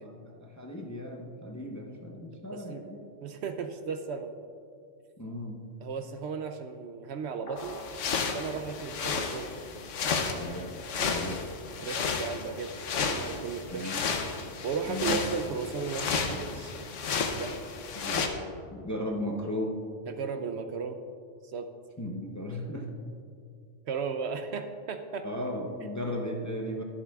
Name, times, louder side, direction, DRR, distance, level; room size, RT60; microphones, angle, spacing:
voice 1, 0.0-3.1 5.2-5.7 10.3-11.4 13.7-14.1 14.9-15.3 18.0-18.3 18.7-19.7 22.0-22.9 25.2-26.8, left 1 dB, 20° left, 1 dB, 0.6 m, -36 dB
voice 2, 2.5-2.8 3.2-4.3 5.8-7.8 8.3-9.5 11.0-11.2 11.8-12.7 13.0-14.0 14.6-16.7 17.4-17.6 20.1-21.0 21.4-21.7 23.9-25.3, right 5 dB, 65° right, 7 dB, 0.8 m, -35 dB
sound 1, 7.5-8.0, left 1 dB, 50° left, 1.6 m, -43 dB
sound 2, 7.6-18.3, left 5 dB, 75° left, 1.1 m, -32 dB
21.5 x 7.4 x 2.4 m, 2.3 s
omnidirectional pair, 1.3 m